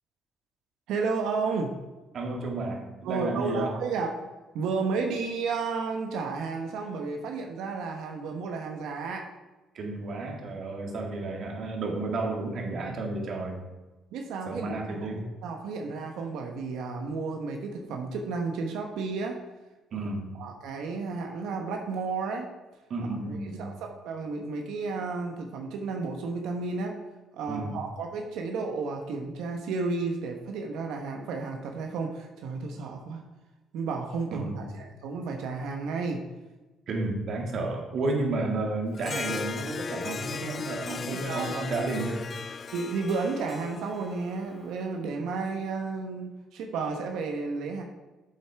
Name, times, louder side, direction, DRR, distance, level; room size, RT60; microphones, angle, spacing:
voice 1, 0.9-1.7 3.0-4.1 4.5-9.2 14.1-15.0 15.4-19.4 20.4-22.5 23.2-26.9 27.3-33.2 33.7-36.2 41.1-41.8 42.7-47.8, right 4 dB, 80° right, 2 dB, 1.1 m, -32 dB
voice 2, 2.1-3.8 9.7-13.6 14.5-15.2 19.9-20.3 22.9-23.7 27.5-27.8 34.3-34.7 36.9-42.3, right 2 dB, 55° right, 1 dB, 1.9 m, -32 dB
Harp, 38.9-44.7, left 5 dB, 35° left, 0.3 m, -37 dB
7.9 x 7.7 x 3.5 m, 1.1 s
cardioid pair, 105°, 0 cm